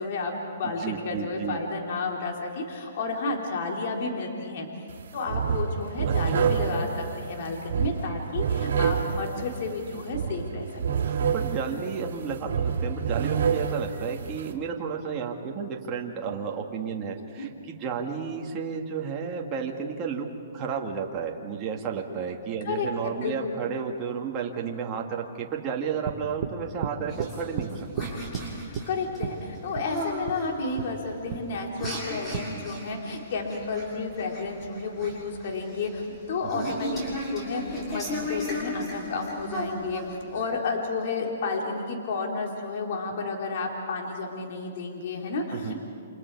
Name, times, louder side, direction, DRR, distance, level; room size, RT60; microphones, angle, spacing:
voice 1, 0.0-4.7 5.1-10.7 17.4-17.5 22.6-23.3 28.9-37.0 37.3-45.7, left 3 dB, 50° left, 0 dB, 3.6 m, -31 dB
voice 2, 0.6-1.6 6.3-6.7 11.1-20.3 20.5-28.1 36.5-36.8 45.5-45.7, right 6 dB, 25° right, 0 dB, 2.2 m, -32 dB
sound 1, 4.9-5.0 5.3-14.5, right 7 dB, 75° right, 2.7 m, -28 dB
sound 2, 26.0-26.6 26.8-27.3 27.6-27.7 28.0-28.4 28.7-28.9 29.2-29.3 29.7-29.9 30.3-30.4 30.8-30.9 31.3-31.4 31.8-32.0 32.3-32.5, right 9 dB, 45° right, 1.8 m, -32 dB
sound 3, 27.1-40.4, left 1 dB, 15° left, 7.0 m, -36 dB
29.5 x 27.5 x 4.8 m, 2.3 s
hypercardioid pair, 155°, 0 cm